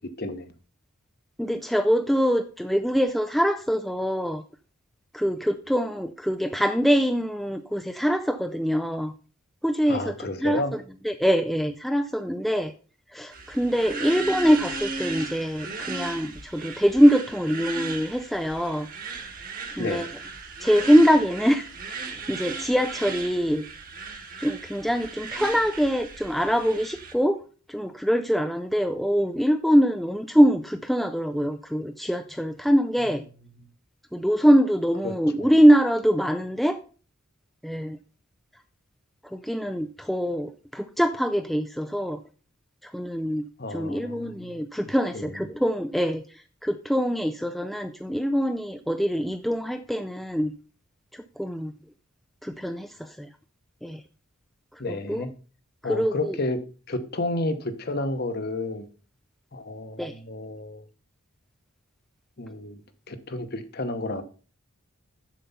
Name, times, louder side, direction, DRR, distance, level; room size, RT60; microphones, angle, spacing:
voice 1, 0.2-0.5 9.9-10.7 19.8-20.0 35.0-35.1 35.4-35.5 43.6-44.6 45.1-45.3 54.8-55.3 55.8-56.6 56.9-58.9 59.5-60.8 62.4-62.8 63.1-64.2, left 2 dB, 45° left, 0.9 m, -31 dB
voice 2, 1.4-4.4 5.1-9.1 9.6-10.6 11.0-12.7 13.1-18.9 19.8-20.1 20.6-21.7 22.1-23.7 24.4-27.4 27.7-33.2 34.1-36.8 37.6-38.0 39.2-42.2 42.8-50.5 51.1-51.7 52.4-53.3 53.8-54.0 54.9-55.3 55.8-56.4 60.0-60.1, equal, ahead, 0.3 m, -23 dB
sound 1, 13.3-27.1, right 4 dB, 40° right, 1.3 m, -36 dB
7.4 x 6.9 x 5.5 m
head